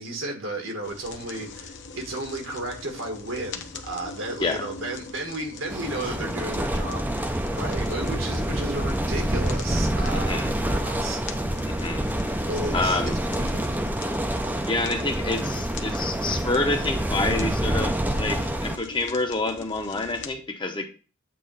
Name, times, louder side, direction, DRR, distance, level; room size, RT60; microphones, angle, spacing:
voice 1, 0.0-11.2 12.5-13.8, right 2 dB, 80° right, 1.9 m, -33 dB
sound 1, 0.8-20.3, left 4 dB, 60° left, 0.9 m, -42 dB
sound 2, 5.7-18.8, right 1 dB, 10° right, 0.5 m, -27 dB
voice 2, 10.1-10.5 11.7-12.1 12.7-13.1 14.7-20.9, left 2 dB, 25° left, 0.8 m, -28 dB
8.5 x 3.0 x 5.4 m
head